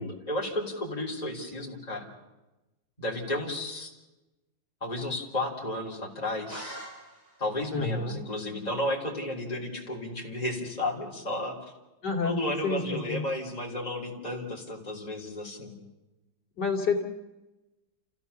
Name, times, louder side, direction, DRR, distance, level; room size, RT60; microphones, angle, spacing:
voice 1, 0.0-2.1 3.0-3.9 4.8-6.8 7.4-11.6 12.2-15.8, left 1 dB, 20° left, -2 dB, 3.7 m, -33 dB
sound 1, 6.5-7.6, right 1 dB, 60° right, 6.8 m, -43 dB
voice 2, 7.7-8.2 12.0-12.4 12.6-13.2 16.6-17.0, left 4 dB, 55° left, 1 dB, 3.3 m, -29 dB
29.0 x 15.0 x 7.0 m, 1.0 s
omnidirectional pair, 2.1 m